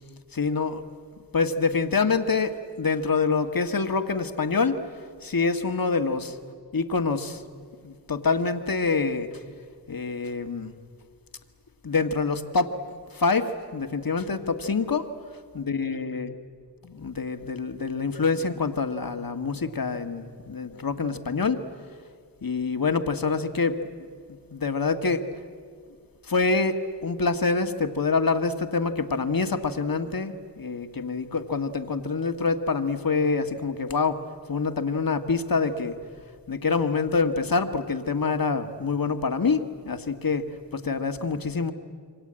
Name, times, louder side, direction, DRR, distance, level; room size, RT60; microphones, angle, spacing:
voice 1, 0.3-0.8 1.3-4.8 5.2-6.4 6.7-7.4 7.8-9.3 9.9-10.7 11.8-15.1 15.6-16.3 16.8-21.6 22.4-23.8 24.3-25.2 26.3-36.0 36.5-41.7, left 4 dB, 50° left, 7 dB, 1.7 m, -26 dB
28.0 x 24.5 x 8.8 m, 2.1 s
cardioid pair, 55°, 43 cm